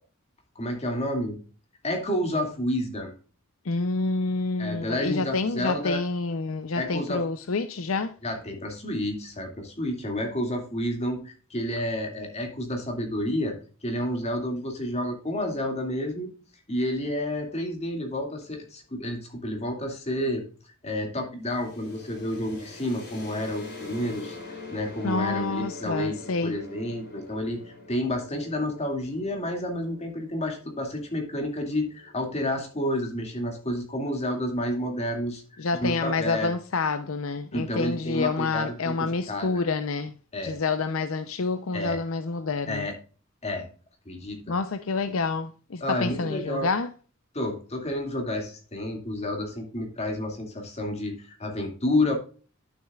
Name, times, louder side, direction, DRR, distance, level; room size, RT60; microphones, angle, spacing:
voice 1, 0.6-1.4 1.8-3.1 4.6-6.0 6.8-7.2 8.2-16.3 16.7-20.4 20.8-36.5 37.5-39.6 40.3-40.6 41.7-42.0 42.7-42.9 43.4-43.7 44.1-44.6 45.8-46.7 47.3-52.1, left 1 dB, 30° left, 2.3 m, -30 dB
voice 2, 3.7-8.1 25.0-26.6 35.6-40.1 40.4-42.9 44.5-46.9, left 4 dB, 75° left, 0.6 m, -28 dB
sound 1, 21.4-33.1, left 3 dB, 55° left, 3.2 m, -45 dB
11.5 x 6.5 x 2.3 m
head